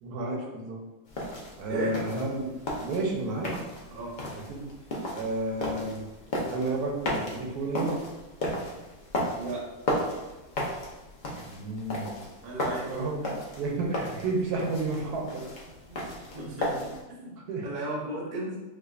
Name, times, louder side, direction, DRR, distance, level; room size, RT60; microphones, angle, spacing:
voice 1, 0.0-0.8 1.6-2.5 2.8-3.5 4.5-4.7 5.1-6.0 6.5-8.0 11.4-12.1 12.9-13.2 13.6-15.5 17.5-17.7, right 2 dB, 85° right, 0 dB, 1.2 m, -31 dB
sound 1, 1.1-17.0, left 1 dB, 60° left, 0.5 m, -35 dB
voice 2, 12.4-13.4 15.9-18.6, right 2 dB, 40° right, -3 dB, 0.7 m, -36 dB
4.9 x 2.3 x 2.4 m, 1.1 s
omnidirectional pair, 1.6 m